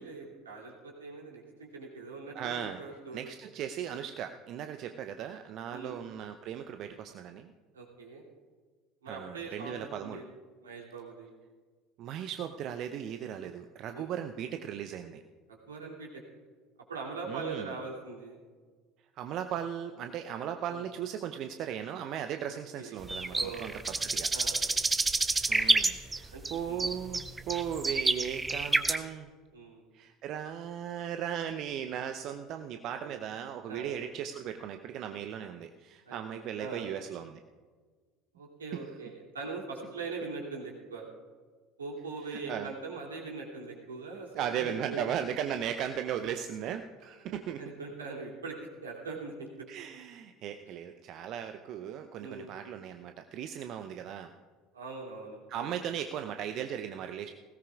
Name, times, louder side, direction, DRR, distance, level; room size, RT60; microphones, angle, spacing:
voice 1, 0.0-3.3 5.7-6.0 7.7-8.2 9.0-10.2 10.6-11.3 13.3-13.5 13.9-14.1 15.7-16.2 16.9-18.4 20.7-20.8 22.5-24.0 24.3-24.6 26.3-26.8 29.5-29.8 33.0-33.2 33.7-33.9 36.1-36.8 38.3-41.0 41.8-45.1 47.3-49.7 52.2-52.5 54.7-55.8, right 4 dB, 75° right, -2 dB, 2.7 m, -42 dB
voice 2, 2.3-2.8 3.1-7.5 9.1-10.2 12.0-15.2 17.3-17.7 19.2-23.7 24.0-24.3 25.5-29.3 29.9-37.4 42.3-42.7 44.3-47.6 49.7-54.3 55.5-57.3, right 9 dB, 50° right, 7 dB, 0.6 m, -37 dB
sound 1, 23.0-26.5 26.8-29.0, right 3 dB, 15° right, 0.8 m, -28 dB
20.0 x 17.0 x 2.4 m, 1.5 s
figure-of-eight pair, 65°, 0 cm